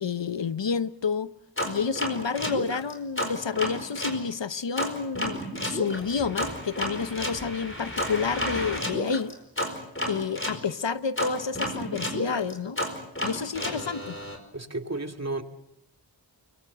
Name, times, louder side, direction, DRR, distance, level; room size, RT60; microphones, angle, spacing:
voice 1, 0.0-1.3 1.6-9.4 10.1-12.8 13.2-14.2, left 5 dB, 80° left, 0.9 m, -29 dB
sound 1, 1.6-4.2 4.8-10.6 11.2-14.4, equal, 30° left, 4.7 m, -32 dB
voice 2, 14.5-15.4, right 2 dB, 35° right, 2.6 m, -32 dB
24.5 x 22.0 x 7.9 m
wide cardioid pair, 45°, 43 cm